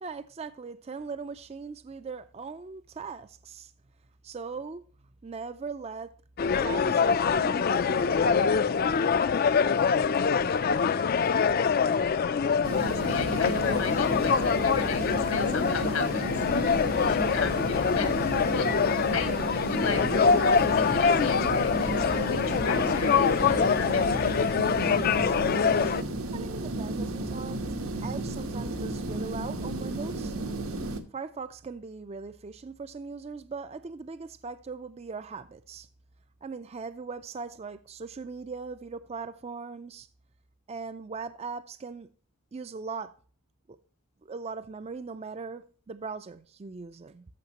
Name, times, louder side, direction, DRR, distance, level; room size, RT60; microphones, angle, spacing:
voice 1, 0.0-3.7 4.2-4.8 5.2-6.1 6.6-8.9 26.3-27.6 28.0-30.3 31.1-35.9 36.4-40.1 40.7-42.1 42.5-43.1 43.7-43.8 44.2-47.2, right 4 dB, 30° right, 0.4 m, -39 dB
sound 1, 6.4-26.0, left 6 dB, 45° left, 0.4 m, -25 dB
sound 2, 12.6-31.0, right 2 dB, 80° right, 1.1 m, -33 dB
voice 2, 12.8-18.7 19.1-24.5, left 5 dB, 80° left, 1.7 m, -36 dB
13.5 x 6.1 x 2.9 m
head